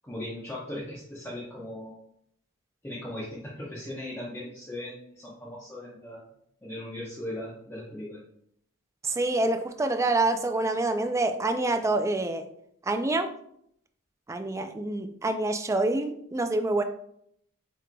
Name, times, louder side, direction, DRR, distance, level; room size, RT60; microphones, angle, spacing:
voice 1, 0.0-2.0 2.8-6.2 6.6-8.2, left 1 dB, 10° left, -7 dB, 0.8 m, -38 dB
voice 2, 9.0-12.5 12.9-13.3 14.3-16.8, right 2 dB, 15° right, 7 dB, 0.3 m, -26 dB
7.5 x 3.2 x 2.2 m, 0.70 s
head